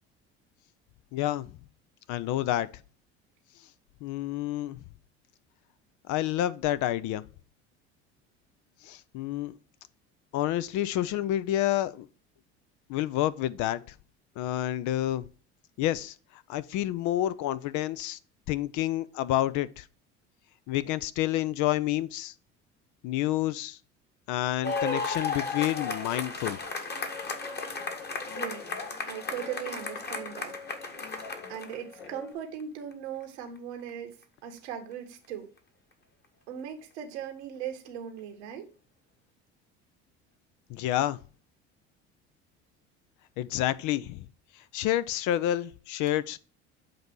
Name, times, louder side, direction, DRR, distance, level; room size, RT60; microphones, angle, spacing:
voice 1, 1.1-1.5 2.1-2.7 4.0-4.8 6.1-7.2 8.8-9.6 10.3-12.1 12.9-13.8 14.4-15.3 15.8-18.2 18.5-19.9 20.7-22.3 23.0-23.8 24.3-26.6 40.7-41.2 43.4-44.3 44.5-46.4, left 13 dB, 60° left, 0.6 m, -29 dB
sound 1, 24.6-31.9 32.9-33.0, left 4 dB, 30° left, 1.4 m, -34 dB
Guitar, 26.9-32.3, left 4 dB, 80° left, 1.8 m, -47 dB
voice 2, 28.3-28.7 29.1-30.6 31.5-35.5 36.5-38.7, right 9 dB, 80° right, 1.5 m, -39 dB
7.7 x 2.7 x 6.0 m
hypercardioid pair, 75°, 33 cm